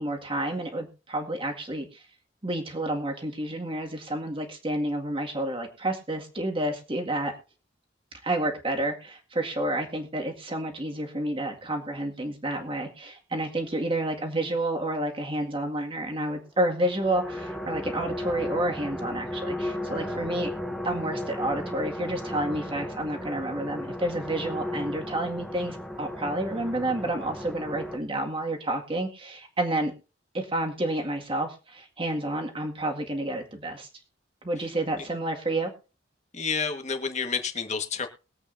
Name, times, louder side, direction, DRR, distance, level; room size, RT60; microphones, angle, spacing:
voice 1, 0.0-1.9 2.4-7.3 8.2-20.5 20.8-29.9 30.3-33.9 34.4-35.7, right 1 dB, 30° right, 2 dB, 2.0 m, -30 dB
sound 1, 16.6-28.0, left 1 dB, ahead, 0.9 m, -35 dB
voice 2, 36.3-38.1, left 5 dB, 40° left, 6 dB, 1.5 m, -29 dB
22.0 x 8.1 x 2.6 m, 0.34 s
head